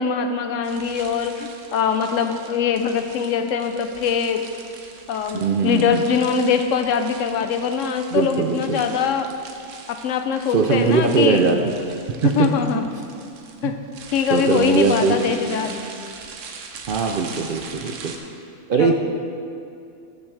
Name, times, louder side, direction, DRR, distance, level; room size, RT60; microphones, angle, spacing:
voice 1, 0.0-4.4 5.1-9.3 9.9-11.4 12.2-12.9 13.6-13.8 14.1-15.8 18.8-18.9, left 6 dB, 80° left, 8 dB, 1.0 m, -22 dB
sound 1, 0.6-18.2, right 5 dB, 75° right, 1.1 m, -41 dB
voice 2, 5.3-6.0 8.1-8.8 10.5-11.7 12.2-12.5 13.6-13.7 14.3-15.5 16.9-18.1 18.7-18.9, right 5 dB, 60° right, 4 dB, 0.6 m, -20 dB
12.5 x 7.0 x 3.3 m, 2.5 s
omnidirectional pair, 1.3 m